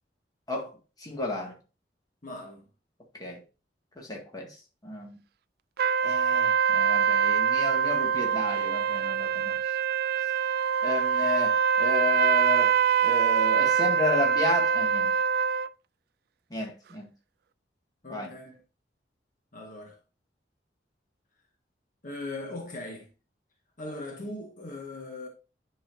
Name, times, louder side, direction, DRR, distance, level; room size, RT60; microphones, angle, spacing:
voice 1, 1.0-1.5 3.1-3.4 4.0-4.5 4.8-5.2 6.0-9.7 10.8-12.8 13.0-15.2 16.5-17.1 18.1-18.6, left 2 dB, 20° left, 2.0 m, -32 dB
voice 2, 2.2-2.7 18.0-18.5 19.5-20.0 22.0-23.1 23.8-25.3, left 2 dB, 50° left, 1.5 m, -39 dB
sound 1, 5.8-15.7, right 7 dB, 60° right, 0.3 m, -24 dB
10.0 x 5.7 x 2.7 m
head